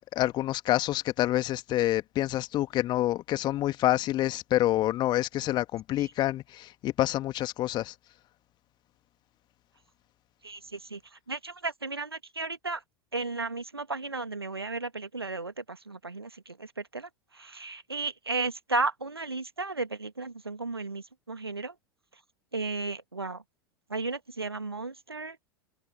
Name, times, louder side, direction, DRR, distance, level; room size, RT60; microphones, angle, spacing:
voice 1, 0.1-7.9, left 14 dB, 35° left, 2.2 m, -27 dB
voice 2, 10.4-11.0 11.3-12.8 13.1-16.7 16.9-21.7 22.5-23.4 23.9-25.4, right 3 dB, 80° right, 2.0 m, -34 dB
figure-of-eight pair, 85°, 13 cm